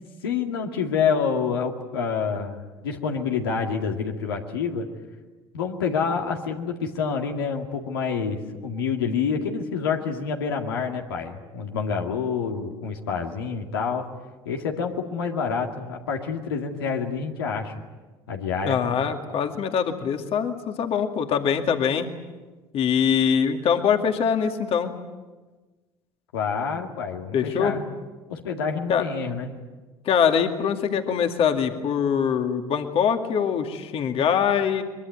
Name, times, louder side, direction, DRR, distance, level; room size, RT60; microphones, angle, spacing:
voice 1, 0.2-4.9 5.5-14.1 14.5-17.7 18.3-18.8 26.3-27.9 28.3-29.6, left 6 dB, 85° left, 2 dB, 2.2 m, -27 dB
voice 2, 18.6-22.1 22.7-24.9 27.3-27.8 28.9-29.0 30.1-34.8, left 7 dB, 55° left, 5 dB, 2.2 m, -23 dB
23.0 x 22.5 x 9.5 m, 1.3 s
hypercardioid pair, 65°, 12 cm